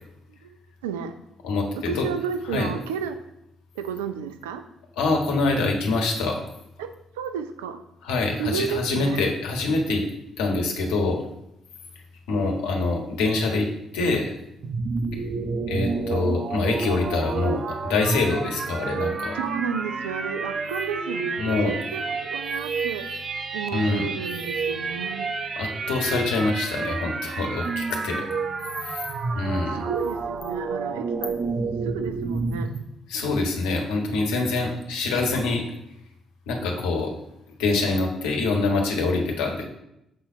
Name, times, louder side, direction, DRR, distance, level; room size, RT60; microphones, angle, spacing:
voice 1, 0.8-1.1 1.9-3.2 3.7-4.6 6.8-7.8 8.4-9.2 19.3-23.3 23.5-25.4 29.6-31.4 31.8-32.7, right 7 dB, 85° right, 8 dB, 0.5 m, -32 dB
voice 2, 1.4-2.1 2.5-2.7 5.0-6.5 8.0-10.0 10.4-11.3 12.3-13.7 13.9-14.3 15.1-15.2 15.7-17.6 17.9-19.4 21.4-21.8 23.7-24.1 25.5-28.3 28.8-29.0 29.3-29.8 33.1-35.6 36.5-37.1 37.6-39.6, left 3 dB, 80° left, 2 dB, 1.4 m, -25 dB
sound 1, 14.6-32.8, right 4 dB, 50° right, 0.8 m, -29 dB
7.6 x 4.2 x 5.0 m, 0.82 s
hypercardioid pair, 45°, 0 cm